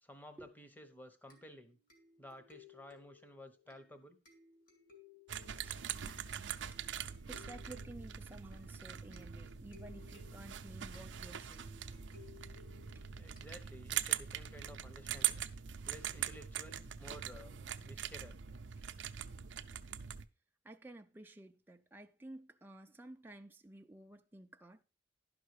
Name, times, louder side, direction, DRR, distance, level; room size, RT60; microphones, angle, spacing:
voice 1, 0.0-1.8 2.2-4.2 13.2-15.4 15.9-17.5 17.8-18.4, equal, 10° left, 1.0 m, -54 dB
sound 1, 1.3-14.1, left 6 dB, 50° left, 2.7 m, -62 dB
sound 2, 5.3-20.3, right 10 dB, 75° right, 0.5 m, -42 dB
voice 2, 5.6-5.9 7.3-11.7 12.9-13.1 17.9-18.0 18.8-18.9 20.6-24.8, right 1 dB, 10° right, 0.4 m, -53 dB
11.0 x 5.6 x 4.8 m
head